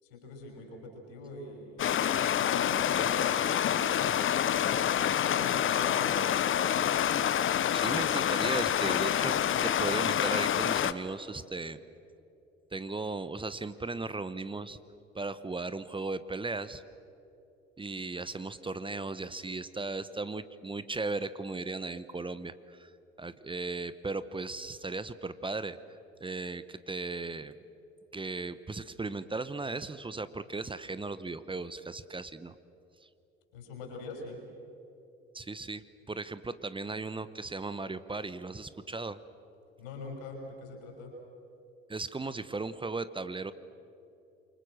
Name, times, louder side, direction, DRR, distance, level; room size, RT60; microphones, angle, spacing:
voice 1, 0.0-3.8 4.9-6.7 33.5-34.4 39.8-41.1, left 2 dB, 75° left, 1 dB, 6.2 m, -44 dB
Stream, 1.8-10.9, left 9 dB, 40° left, 1.0 m, -27 dB
voice 2, 7.7-11.8 12.7-14.8 15.1-16.8 17.8-22.9 23.2-25.8 26.2-27.5 28.1-32.5 35.3-39.2 41.9-43.5, right 3 dB, 15° right, 14 dB, 1.1 m, -37 dB
28.5 x 24.5 x 6.6 m, 2.7 s
figure-of-eight pair, 55°, 30 cm